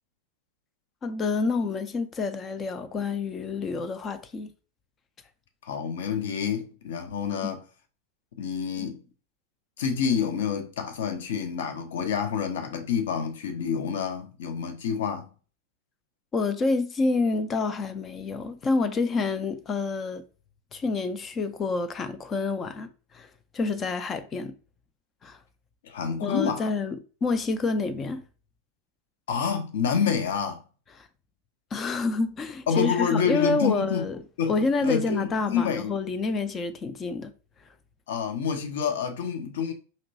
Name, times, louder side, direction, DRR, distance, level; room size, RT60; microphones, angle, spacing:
voice 1, 1.0-4.5 8.8-8.9 16.3-20.2 20.7-24.5 25.2-25.4 26.2-28.2 31.0-31.1 31.7-34.2 34.5-37.3, left 3 dB, 25° left, 0.5 m, -28 dB
voice 2, 5.6-7.6 8.4-9.0 9.8-15.3 25.8-26.7 29.3-30.6 32.7-34.1 34.4-34.5 34.8-35.9 38.1-39.7, left 7 dB, 55° left, 0.7 m, -28 dB
4.2 x 2.9 x 2.6 m
figure-of-eight pair, 90°, 0 cm